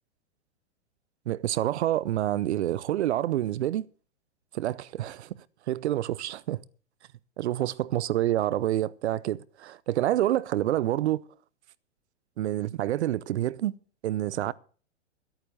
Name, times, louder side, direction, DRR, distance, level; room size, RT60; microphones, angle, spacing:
voice 1, 1.3-3.9 4.5-5.3 5.7-6.6 7.4-11.2 12.4-13.8 14.0-14.5, right 13 dB, 65° right, 0.8 m, -27 dB
13.0 x 9.0 x 6.6 m
hypercardioid pair, 120°, 37 cm